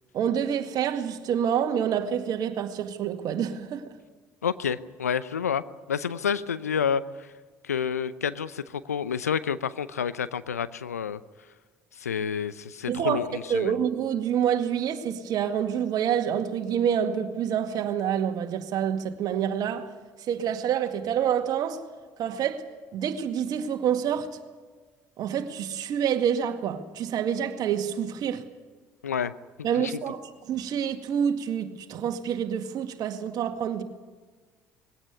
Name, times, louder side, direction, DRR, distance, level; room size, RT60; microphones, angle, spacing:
voice 1, 0.1-4.0 12.9-13.2 13.5-19.9 20.3-21.8 22.2-22.6 22.9-24.3 25.2-28.4 29.6-30.2 30.5-33.8, right 8 dB, 55° right, 2.0 m, -27 dB
voice 2, 4.4-5.6 5.9-7.3 7.6-11.2 12.0-13.8 29.0-29.3 29.8-29.9, left 7 dB, 90° left, 0.7 m, -29 dB
21.0 x 17.0 x 9.5 m
hypercardioid pair, 60°, 8 cm